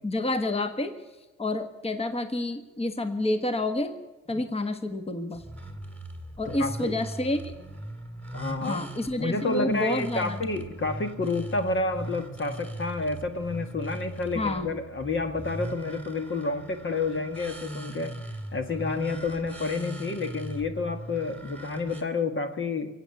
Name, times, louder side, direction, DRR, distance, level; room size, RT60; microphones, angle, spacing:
voice 1, 0.0-0.9 1.4-3.9 4.3-5.4 6.4-7.4 8.6-10.4 14.3-14.7, left 2 dB, 20° left, 8 dB, 1.4 m, -29 dB
sound 1, 5.3-22.0, right 1 dB, 5° left, 2.4 m, -39 dB
voice 2, 6.5-7.0 8.3-8.8 9.2-18.2 18.5-23.0, left 3 dB, 40° left, 7 dB, 1.4 m, -30 dB
22.5 x 8.6 x 6.9 m, 1.2 s
cardioid pair, 90°, 30 cm